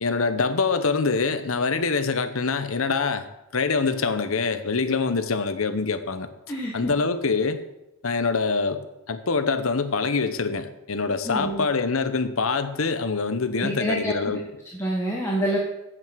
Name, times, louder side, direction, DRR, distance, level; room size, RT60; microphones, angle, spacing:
voice 1, 0.0-3.3 3.5-6.3 6.7-7.6 8.0-14.4, left 4 dB, 80° left, 10 dB, 1.0 m, -25 dB
voice 2, 6.5-6.9 11.2-11.6 13.6-14.2 14.7-15.6, right 1 dB, 15° left, -3 dB, 1.5 m, -27 dB
7.8 x 7.8 x 7.9 m, 0.92 s
head